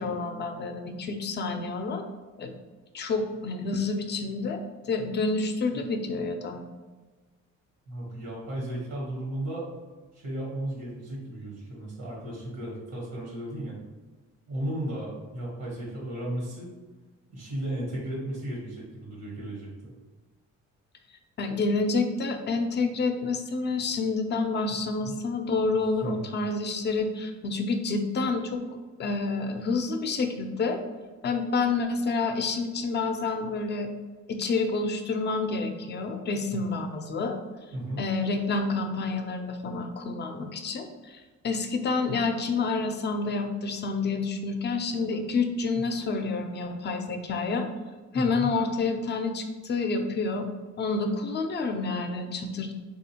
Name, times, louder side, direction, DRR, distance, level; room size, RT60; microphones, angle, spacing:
voice 1, 0.0-2.0 2.4-2.5 2.9-6.6 21.4-28.6 29.0-30.8 31.2-33.9 34.3-37.4 38.0-47.7 48.1-50.5 50.8-52.7, left 3 dB, 35° left, 6 dB, 0.5 m, -28 dB
voice 2, 7.9-9.6 10.1-13.8 14.5-16.7 17.3-19.9 25.0-25.1 26.0-26.2 36.5-36.6 37.7-38.0 45.7-45.8 48.1-48.5, right 1 dB, 85° right, -4 dB, 1.2 m, -35 dB
3.5 x 2.4 x 2.8 m, 1.3 s
cardioid pair, 90°, 30 cm